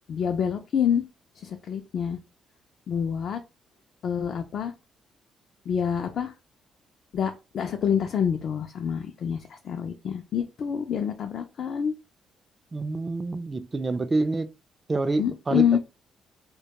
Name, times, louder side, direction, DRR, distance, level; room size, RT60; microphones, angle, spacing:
voice 1, 0.1-1.0 1.4-2.2 2.9-3.4 4.0-4.7 5.7-6.3 7.1-11.9 15.2-15.8, left 8 dB, 60° left, 0.3 m, -27 dB
voice 2, 12.7-14.5 14.9-15.8, right 3 dB, 25° right, 0.3 m, -27 dB
2.1 x 2.1 x 2.8 m
cardioid pair, 90°, 0 cm